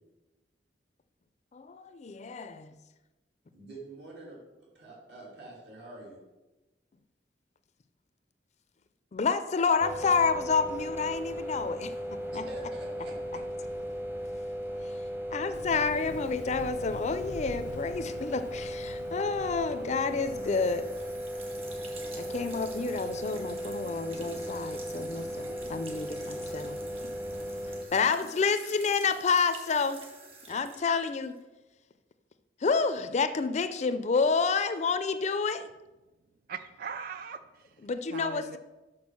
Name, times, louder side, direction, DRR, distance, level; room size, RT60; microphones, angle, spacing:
voice 1, 1.5-2.7 9.1-11.9 15.3-20.9 22.1-26.8 27.9-30.0 30.5-31.4 32.6-35.7 37.8-38.6, left 5 dB, 40° left, 11 dB, 0.4 m, -29 dB
voice 2, 3.5-6.2 12.3-13.4, right 2 dB, 70° right, -4 dB, 2.8 m, -46 dB
sound 1, 9.8-27.9, equal, 10° right, 0.7 m, -37 dB
Thunder, 15.5-21.4, left 2 dB, 90° left, 0.6 m, -47 dB
sound 2, 20.0-31.4, right 2 dB, 35° right, 1.5 m, -48 dB
voice 3, 36.5-38.6, right 5 dB, 55° right, 10 dB, 0.3 m, -40 dB
6.2 x 6.0 x 6.1 m, 1.1 s
head